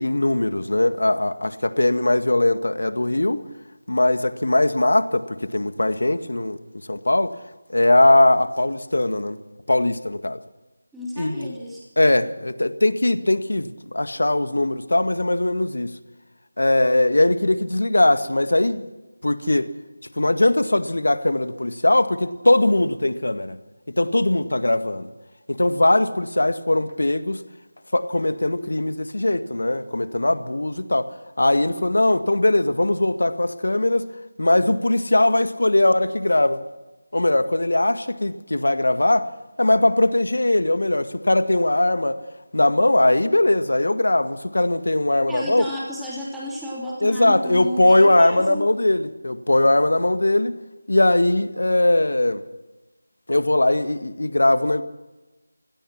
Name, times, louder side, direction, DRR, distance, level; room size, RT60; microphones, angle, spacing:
voice 1, 0.0-3.4 3.9-6.6 6.9-7.3 7.7-9.4 9.7-10.4 11.2-11.6 12.0-15.9 16.6-18.8 19.2-19.7 20.2-23.6 24.0-25.1 25.5-27.4 27.9-31.1 31.4-34.0 34.4-36.6 37.1-39.3 39.6-42.2 42.5-45.6 47.0-50.6 50.9-52.4 53.3-54.8, left 1 dB, 65° left, 1.8 m, -20 dB
voice 2, 10.9-11.8 45.3-48.6, equal, ahead, 3.0 m, -32 dB
28.5 x 17.0 x 6.0 m
figure-of-eight pair, 165°, 0 cm